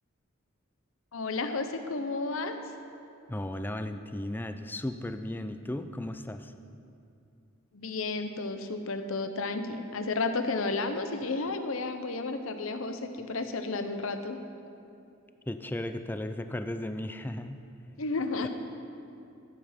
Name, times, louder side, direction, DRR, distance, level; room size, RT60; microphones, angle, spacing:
voice 1, 1.1-2.6 7.7-14.4 18.0-18.5, left 3 dB, 70° left, 8 dB, 0.8 m, -32 dB
voice 2, 3.3-6.5 15.5-17.6, left 1 dB, 10° left, 8 dB, 0.4 m, -35 dB
14.0 x 7.8 x 5.1 m, 2.6 s
head